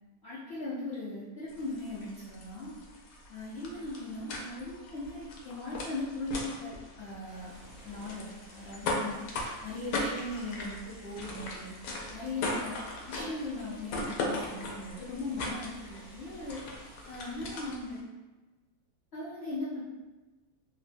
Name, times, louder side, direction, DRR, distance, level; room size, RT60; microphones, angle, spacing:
voice 1, 0.2-2.7 3.3-6.7 7.0-7.6 7.8-11.7 12.1-16.6 17.1-18.0 19.1-19.8, left 2 dB, 70° left, -10 dB, 0.6 m, -39 dB
sound 1, 1.5-18.0, left 2 dB, 85° left, 1.3 m, -39 dB
sound 2, 7.2-17.4, right 1 dB, 70° right, 0.8 m, -57 dB
3.1 x 2.1 x 2.5 m, 1.2 s
omnidirectional pair, 1.9 m